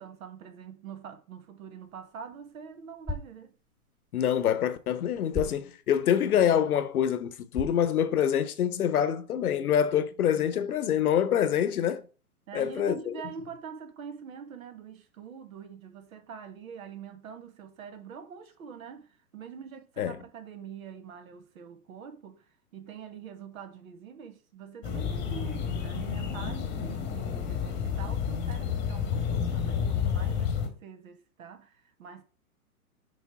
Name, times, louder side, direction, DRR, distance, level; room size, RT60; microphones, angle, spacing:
voice 1, 0.0-3.5 10.1-11.0 12.5-22.4 22.7-32.2, right 7 dB, 65° right, 1.5 m, -45 dB
sound 1, 1.8-8.7, left 2 dB, 10° right, 1.8 m, -43 dB
voice 2, 4.1-12.0 12.5-13.1 20.0-20.2, left 9 dB, 75° left, 0.9 m, -26 dB
sound 2, 24.8-30.7, left 7 dB, 25° left, 1.2 m, -30 dB
6.3 x 3.4 x 4.8 m
hypercardioid pair, 130°, 45 cm